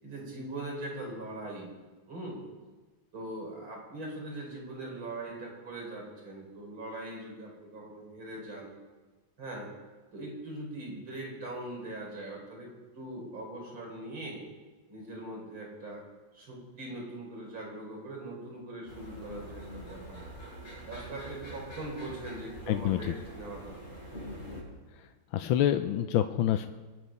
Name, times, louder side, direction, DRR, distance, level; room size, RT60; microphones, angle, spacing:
voice 1, 0.0-1.7 2.1-2.4 3.1-8.7 9.4-9.7 10.1-14.4 14.9-16.0 16.3-20.2 20.8-24.0, right 1 dB, 75° right, -2 dB, 5.4 m, -41 dB
sound 1, 18.9-24.6, equal, 35° left, 6.7 m, -45 dB
voice 2, 22.7-23.0 25.3-26.7, left 11 dB, 85° left, 8 dB, 1.5 m, -26 dB
22.5 x 10.0 x 5.3 m, 1.3 s
omnidirectional pair, 2.2 m